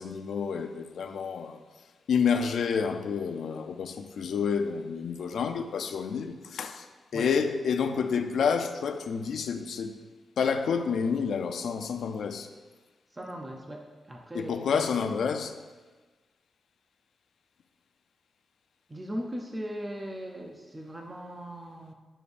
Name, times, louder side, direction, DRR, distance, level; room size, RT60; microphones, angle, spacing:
voice 1, 0.0-1.6 2.1-6.9 7.1-9.9 10.4-12.5 14.3-15.5, left 6 dB, 80° left, 7 dB, 0.5 m, -29 dB
voice 2, 13.1-15.1 18.9-21.9, equal, 20° right, 1 dB, 0.6 m, -39 dB
9.7 x 5.1 x 2.6 m, 1.3 s
wide cardioid pair, 130°, 0 cm